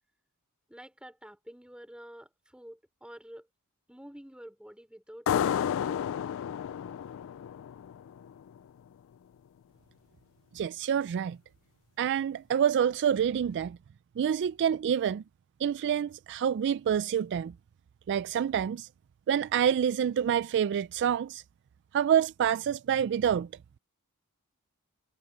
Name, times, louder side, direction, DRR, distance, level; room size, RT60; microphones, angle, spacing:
voice 1, 0.7-3.5 3.9-6.2, equal, 5° right, 5.1 m, -49 dB
sound 1, 5.3-8.6, left 9 dB, 60° left, 0.3 m, -31 dB
voice 2, 10.5-11.4 12.0-13.8 14.2-15.2 15.6-17.5 18.1-18.9 19.3-21.4 21.9-23.5, right 8 dB, 55° right, 0.3 m, -27 dB
head